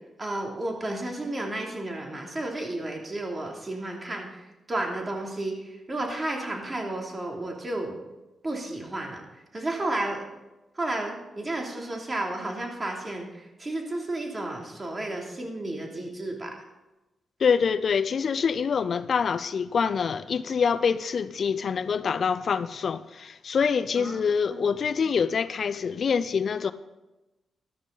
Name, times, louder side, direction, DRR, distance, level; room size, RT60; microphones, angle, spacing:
voice 1, 0.2-4.4 4.7-5.5 5.9-7.9 8.4-9.2 9.5-10.3 10.8-16.5 24.0-24.2 25.2-25.3, right 2 dB, 30° right, 3.0 m, -32 dB
voice 2, 17.4-26.7, left 6 dB, 60° left, 0.5 m, -25 dB
13.5 x 12.5 x 4.0 m
cardioid pair, 60°, 0 cm